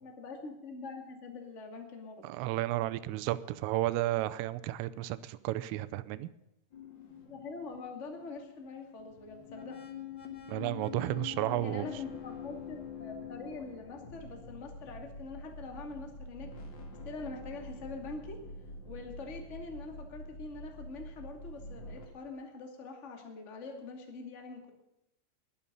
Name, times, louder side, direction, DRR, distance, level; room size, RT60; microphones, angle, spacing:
voice 1, 0.0-2.3 7.2-9.8 11.6-16.5 17.0-18.4 18.8-24.7, left 3 dB, 35° left, 3 dB, 1.1 m, -44 dB
voice 2, 2.2-6.3 10.5-11.9, right 15 dB, 90° right, 15 dB, 3.3 m, -32 dB
sound 1, 6.7-22.1, left 4 dB, 60° left, 1.2 m, -46 dB
21.5 x 8.7 x 5.5 m, 0.87 s
omnidirectional pair, 5.7 m